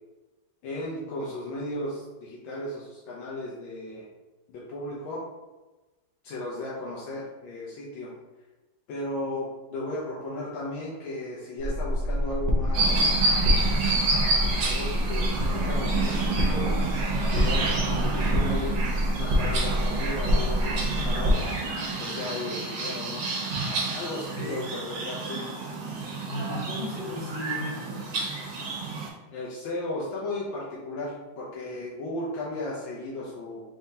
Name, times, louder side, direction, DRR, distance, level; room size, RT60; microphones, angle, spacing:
voice 1, 0.6-4.1 4.5-5.2 6.2-8.1 8.9-13.3 14.2-16.8 17.3-18.9 19.2-21.4 22.0-23.3 23.9-25.5 29.3-33.6, left 1 dB, 85° left, -5 dB, 1.5 m, -35 dB
sound 1, 11.6-21.3, left 1 dB, 45° right, 0.5 m, -26 dB
sound 2, 12.7-29.1, right 3 dB, 75° right, 1.7 m, -29 dB
voice 2, 24.2-24.5 26.2-28.0, left 1 dB, 65° left, -8 dB, 2.3 m, -36 dB
4.4 x 3.6 x 2.7 m, 1.2 s
omnidirectional pair, 2.0 m